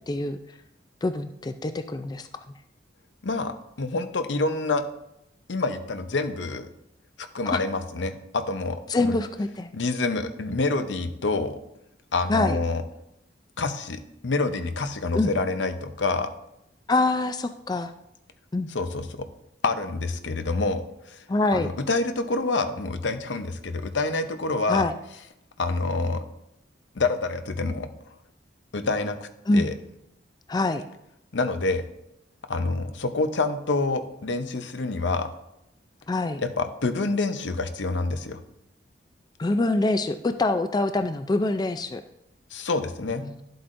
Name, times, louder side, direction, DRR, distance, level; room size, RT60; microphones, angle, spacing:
voice 1, 0.1-0.4 1.0-2.3 7.5-7.6 8.9-9.7 12.3-12.6 15.1-15.3 16.9-17.9 18.5-18.7 21.3-21.7 24.7-24.9 29.5-29.7 30.5-30.8 36.1-36.4 39.4-42.0 43.2-43.4, left 2 dB, 20° left, 9 dB, 0.3 m, -25 dB
voice 2, 3.2-4.8 5.5-6.7 7.2-9.2 9.7-11.6 12.1-12.8 13.6-16.3 18.7-19.2 19.6-21.2 21.5-24.9 25.6-26.2 26.9-27.9 28.7-29.7 31.3-31.9 32.5-35.3 36.4-38.4 42.5-43.2, left 3 dB, 90° left, 8 dB, 0.8 m, -27 dB
11.5 x 7.8 x 2.6 m, 0.83 s
head